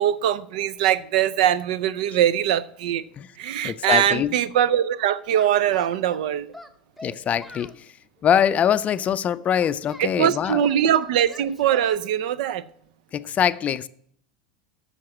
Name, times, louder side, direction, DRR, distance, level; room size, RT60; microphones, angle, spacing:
voice 1, 0.0-3.0 3.4-6.5 10.0-12.6, right 10 dB, 65° right, 0.5 m, -22 dB
voice 2, 3.6-4.3 7.0-7.7 8.2-10.6 13.1-13.9, left 9 dB, 35° left, 0.4 m, -23 dB
Singing, 5.3-6.2 6.5-7.8 8.3-10.1 10.4-12.0, left 1 dB, ahead, 0.9 m, -44 dB
7.5 x 6.7 x 7.3 m
hypercardioid pair, 85°, 4 cm